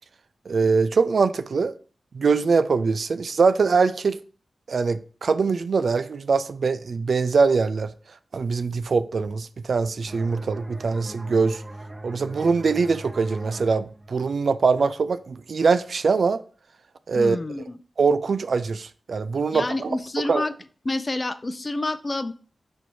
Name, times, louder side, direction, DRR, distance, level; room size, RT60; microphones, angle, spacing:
voice 1, 0.5-1.7 2.1-4.2 4.7-7.9 8.3-11.6 12.0-16.4 17.1-17.4 18.0-19.9 20.3-20.5, right 4 dB, 70° right, 0.3 m, -22 dB
sound 1, 10.1-15.5, right 1 dB, 25° right, 0.6 m, -41 dB
voice 2, 17.1-17.8 19.5-20.5 20.8-22.3, left 2 dB, 40° left, 0.4 m, -28 dB
4.3 x 2.6 x 4.5 m
cardioid pair, 45°, 0 cm